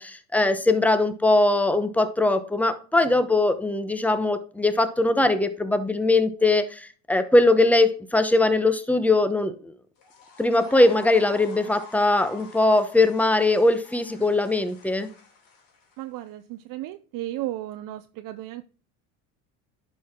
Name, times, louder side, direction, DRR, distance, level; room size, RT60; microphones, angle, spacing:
voice 1, 0.0-9.7 10.4-15.1, left 2 dB, 5° left, 0.9 m, -21 dB
sound 1, 10.0-16.3, left 3 dB, 60° left, 3.2 m, -48 dB
voice 2, 16.0-18.6, right 15 dB, 55° right, 0.6 m, -34 dB
11.0 x 4.8 x 3.6 m
supercardioid pair, 105°, 40 cm